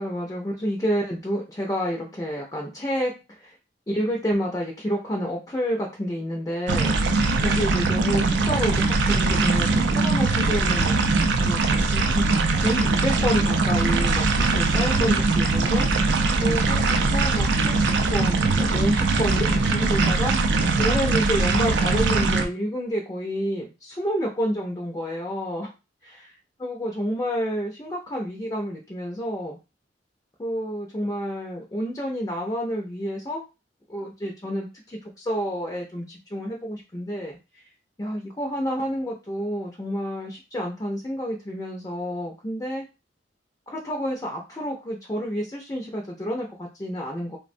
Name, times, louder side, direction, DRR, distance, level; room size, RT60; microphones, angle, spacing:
voice 1, 0.0-3.5 3.9-10.9 11.3-11.6 11.9-12.2 12.5-25.7 26.0-26.3 26.6-29.6 30.4-33.4 33.9-37.4 38.0-42.8 43.7-47.4, equal, 20° left, -1 dB, 0.4 m, -29 dB
sound 1, 6.7-22.5, right 3 dB, 70° right, 0.4 m, -21 dB
3.2 x 2.1 x 2.5 m, 0.29 s
head